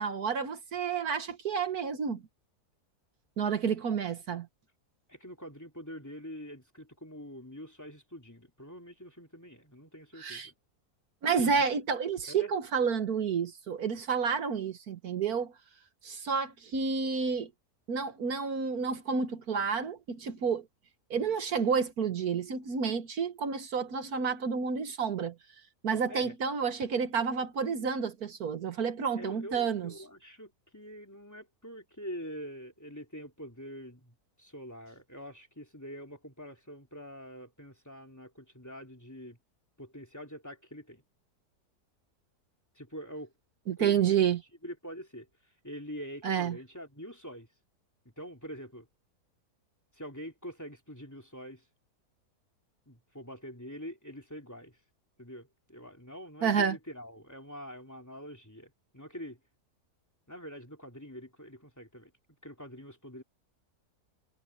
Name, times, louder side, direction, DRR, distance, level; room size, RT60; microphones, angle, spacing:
voice 1, 0.0-2.2 3.4-4.5 10.2-10.5 11.2-15.5 16.0-17.5 17.9-20.7 21.1-25.4 25.8-29.9 43.7-44.4 46.2-46.6 56.4-56.8, right 6 dB, 70° right, 1.8 m, -30 dB
voice 2, 5.1-10.5 11.4-11.7 12.3-12.5 25.9-26.3 29.1-39.4 39.8-41.0 42.7-43.3 43.8-44.1 44.6-45.3 45.6-47.5 48.0-48.9 49.9-51.6 52.9-54.8 55.2-59.4 60.3-62.1 62.4-63.2, equal, 10° left, 3.0 m, -45 dB
omnidirectional pair, 1.7 m